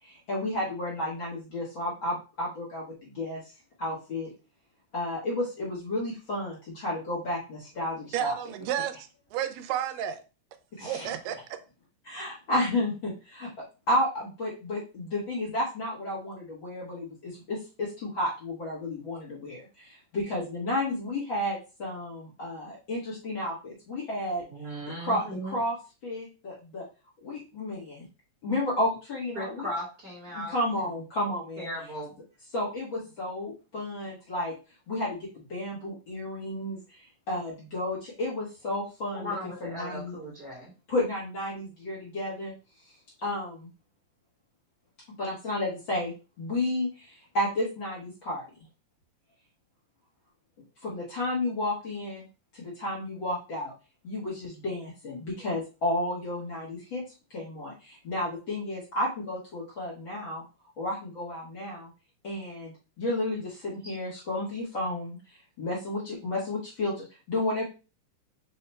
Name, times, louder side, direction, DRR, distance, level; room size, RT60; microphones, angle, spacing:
voice 1, 0.0-3.5 3.8-4.3 4.9-8.3 10.7-11.1 12.0-13.5 13.9-24.4 25.0-25.7 26.0-26.8 27.2-28.0 28.4-29.7 30.3-31.7 32.5-34.5 34.9-39.4 39.6-40.1 40.9-42.5 43.2-43.7 45.2-48.4 50.8-52.2 52.5-53.7 54.0-57.0 57.3-60.4 60.8-61.9 62.2-67.6, left 1 dB, 85° left, -4 dB, 1.0 m, -32 dB
voice 2, 8.1-10.2 10.9-11.4, right 10 dB, 80° right, 9 dB, 2.1 m, -31 dB
voice 3, 24.5-25.6 29.3-30.6 31.6-32.2 39.1-40.7, equal, 50° right, -4 dB, 1.0 m, -37 dB
5.5 x 2.2 x 4.1 m, 0.32 s
omnidirectional pair, 4.2 m